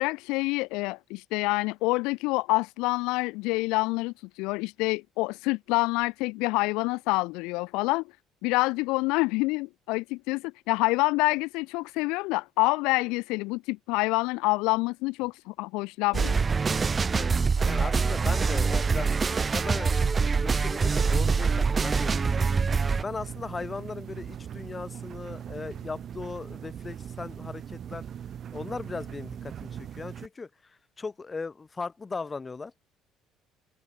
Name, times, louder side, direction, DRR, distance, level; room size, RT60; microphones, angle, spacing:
voice 1, 0.0-8.0 8.4-16.4, left 24 dB, 85° left, 0.4 m, -27 dB
sound 1, 16.1-23.0, right 5 dB, 30° right, 0.8 m, -24 dB
voice 2, 17.1-28.0 28.5-32.7, left 4 dB, 25° left, 3.9 m, -38 dB
sound 2, 20.9-30.3, right 9 dB, 50° right, 1.2 m, -40 dB
supercardioid pair, 90°, 0 cm